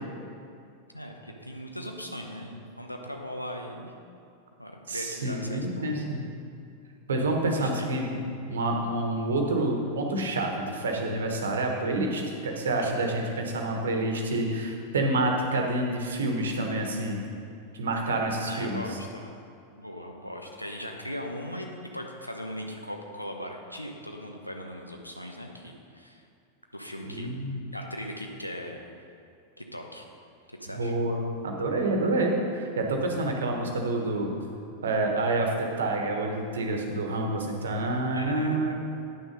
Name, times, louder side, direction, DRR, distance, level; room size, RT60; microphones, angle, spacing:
voice 1, 0.9-3.9 4.6-5.9 7.4-7.9 13.6-14.0 18.4-19.3 19.8-26.2 26.7-27.3 27.7-28.8 29.6-30.1 30.5-30.9 38.1-38.7, equal, 90° left, 2 dB, 1.0 m, -39 dB
voice 2, 4.9-6.2 7.1-8.1 8.5-17.2 17.7-18.8 27.0-27.6 30.8-34.4 34.8-38.7, right 2 dB, 65° right, 2 dB, 1.3 m, -28 dB
9.7 x 6.3 x 5.3 m, 2.5 s
figure-of-eight pair, 90°, 0 cm